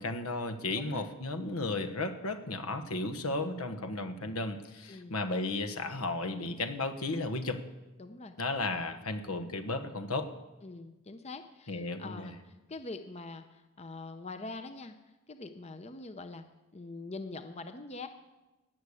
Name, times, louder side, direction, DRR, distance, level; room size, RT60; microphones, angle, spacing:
voice 1, 0.0-7.6 8.4-10.3 11.7-12.3, left 2 dB, 80° left, 9 dB, 1.3 m, -34 dB
voice 2, 0.7-1.1 4.9-5.2 8.0-8.4 10.6-15.0 15.3-16.4 16.7-18.1, left 3 dB, 30° left, 8 dB, 0.7 m, -44 dB
18.0 x 6.6 x 8.5 m, 1.1 s
head